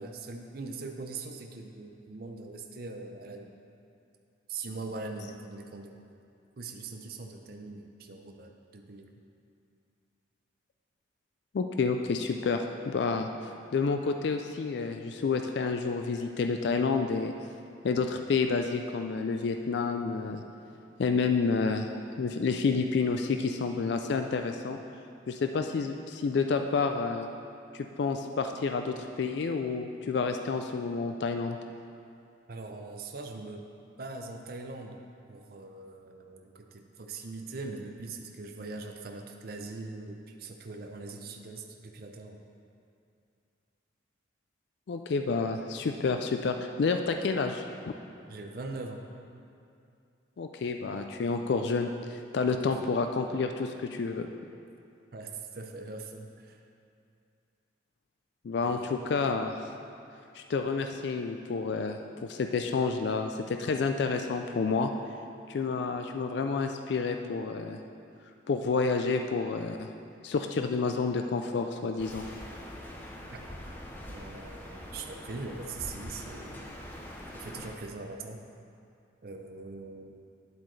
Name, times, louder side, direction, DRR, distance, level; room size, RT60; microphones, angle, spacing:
voice 1, 0.0-3.6 4.5-6.0 6.6-9.1 32.5-33.7 34.0-35.0 35.3-42.4 48.3-49.0 52.6-53.0 55.1-56.6 58.6-59.0 73.3-73.4 74.1-76.8 77.3-78.4 79.2-80.2, right 3 dB, 50° right, 3 dB, 0.5 m, -41 dB
voice 2, 11.5-13.3 13.7-17.3 17.8-20.4 21.0-21.9 22.2-24.8 25.3-27.3 27.7-31.6 44.9-47.9 50.4-54.3 58.4-59.7 60.3-64.9 65.5-67.8 68.5-69.9 70.2-72.2, left 4 dB, 60° left, 5 dB, 0.3 m, -29 dB
sound 1, 72.0-77.8, left 1 dB, 10° left, 0.6 m, -43 dB
9.7 x 7.7 x 3.2 m, 2.5 s
head